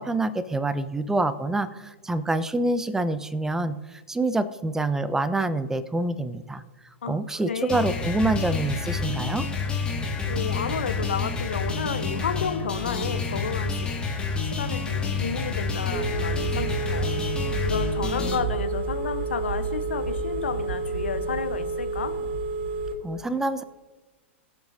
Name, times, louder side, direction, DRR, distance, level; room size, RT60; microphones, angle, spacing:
voice 1, 0.0-6.6 7.1-9.5 23.0-23.6, right 2 dB, 5° right, 15 dB, 0.5 m, -26 dB
voice 2, 7.0-7.8 10.2-13.9 14.3-17.1 17.6-22.2, left 6 dB, 65° left, 9 dB, 0.9 m, -32 dB
sound 1, 7.7-18.3, left 4 dB, 15° left, 1.9 m, -29 dB
Telephone, 15.9-22.9, right 3 dB, 60° right, 2.9 m, -29 dB
22.0 x 7.8 x 2.7 m, 1.2 s
figure-of-eight pair, 100°, 7 cm